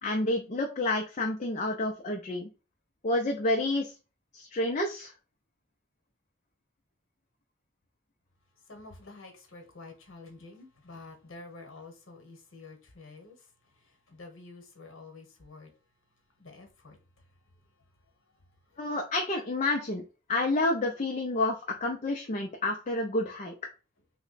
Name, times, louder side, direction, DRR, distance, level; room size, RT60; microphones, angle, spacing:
voice 1, 0.0-2.5 3.0-3.9 4.3-5.1 18.8-20.0 20.3-23.5, left 2 dB, 35° left, 0.4 m, -29 dB
voice 2, 8.7-13.4 13.8-15.7 16.4-17.0 18.7-18.8, left 3 dB, 75° left, 1.0 m, -49 dB
3.1 x 2.2 x 4.0 m
head